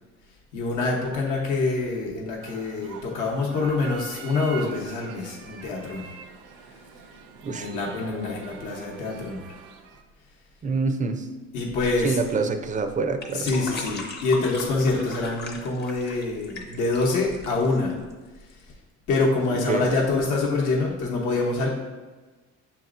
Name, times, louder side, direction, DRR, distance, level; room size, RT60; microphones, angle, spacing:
voice 1, 0.5-6.1 7.5-9.6 11.5-12.4 13.3-17.9 18.4-18.6 19.1-21.7, left 3 dB, 65° left, -3 dB, 0.9 m, -26 dB
sound 1, 2.4-10.0, right 7 dB, 80° right, 0.5 m, -44 dB
voice 2, 10.6-11.3 12.0-13.5 19.7-19.9, right 4 dB, 25° right, 8 dB, 0.4 m, -26 dB
sound 2, 11.7-18.7, left 3 dB, 30° left, 0.8 m, -39 dB
7.0 x 2.8 x 2.4 m, 1.2 s
cardioid pair, 95°, 33 cm